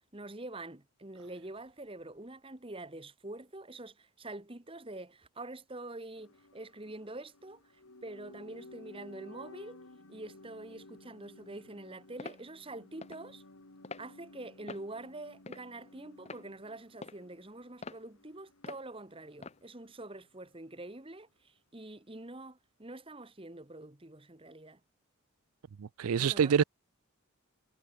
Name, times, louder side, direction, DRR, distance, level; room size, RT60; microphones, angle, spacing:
voice 1, 0.1-7.6 8.0-9.8 10.1-13.4 14.0-24.8 26.1-26.6, right 2 dB, 25° right, 1.4 m, -46 dB
sound 1, 6.2-20.2 20.5-20.6, left 2 dB, 80° left, 2.2 m, -56 dB
sound 2, 12.2-12.4 13.0-13.2 13.8-14.1 14.7-14.9 15.5-15.8 16.3-16.4 17.0-17.2 17.8-18.0 18.6-18.8 19.4-19.6, left 3 dB, 30° left, 0.8 m, -44 dB
voice 2, 25.8-26.6, right 7 dB, 90° right, 0.4 m, -26 dB
head